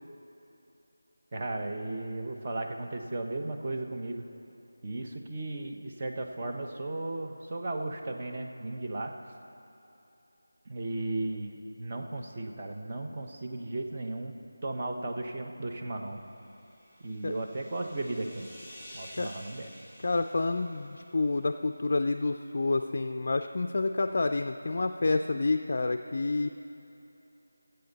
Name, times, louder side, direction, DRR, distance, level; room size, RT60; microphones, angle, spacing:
voice 1, 1.3-4.3 4.8-9.1 10.7-14.3 14.6-16.2 17.0-18.6 18.9-19.7, right 2 dB, 30° right, 2 dB, 0.8 m, -35 dB
sound 1, 16.1-21.7, equal, 5° right, 1.3 m, -51 dB
voice 2, 20.0-26.5, left 3 dB, 45° left, 6 dB, 0.3 m, -28 dB
19.0 x 7.9 x 4.0 m, 2.9 s
figure-of-eight pair, 175°, 0 cm